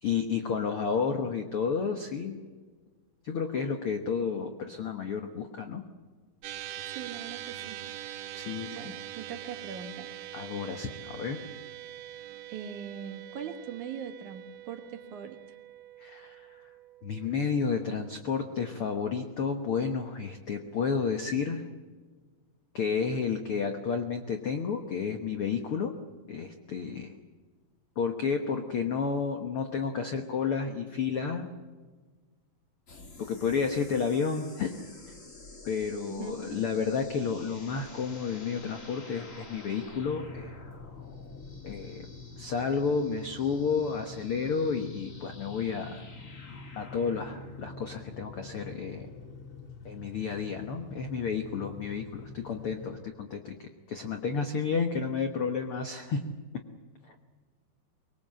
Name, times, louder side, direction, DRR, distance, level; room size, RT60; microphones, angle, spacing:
voice 1, 0.0-2.4 3.2-5.8 8.3-8.9 10.3-11.4 16.0-16.5 17.0-21.6 22.7-25.9 26.3-27.1 28.0-31.5 33.2-34.8 35.6-40.6 41.6-42.0 42.4-46.0 46.7-49.1 49.8-56.4 57.1-57.2, left 5 dB, 75° left, 6 dB, 1.2 m, -31 dB
sound 1, 6.4-19.0, right 12 dB, 90° right, 3.0 m, -44 dB
voice 2, 6.9-7.8 8.7-10.1 12.5-15.4 36.0-36.7, right 7 dB, 60° right, 6 dB, 2.5 m, -41 dB
sound 2, 32.9-49.7, left 3 dB, 35° left, 1.4 m, -50 dB
sound 3, 40.0-53.0, left 4 dB, 50° left, 3.1 m, -47 dB
24.0 x 21.0 x 7.7 m, 1.5 s
omnidirectional pair, 4.4 m